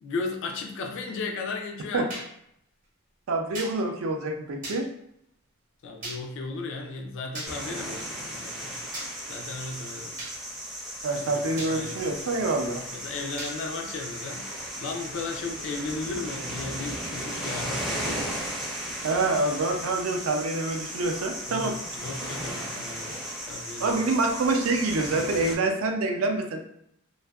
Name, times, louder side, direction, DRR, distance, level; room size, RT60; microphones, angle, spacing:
voice 1, 0.0-2.1 5.8-8.8 9.3-10.2 11.1-11.3 11.7-12.1 12.9-14.5 14.8-18.2 21.5-23.2 23.5-24.0, left 3 dB, 60° left, 2 dB, 0.3 m, -35 dB
sound 1, 2.1-2.3 3.5-3.7 4.6-4.8 6.0-6.2 7.3-7.5 8.9-9.1 10.2-10.3 11.6-11.7 13.4-13.5, right 2 dB, 40° right, 0.8 m, -36 dB
voice 2, 3.3-4.9 11.0-12.8 19.0-21.8 23.8-26.6, right 2 dB, 65° right, 4 dB, 0.4 m, -26 dB
sound 2, 7.4-25.5, equal, ahead, 0.4 m, -36 dB
2.6 x 2.3 x 2.2 m, 0.74 s
head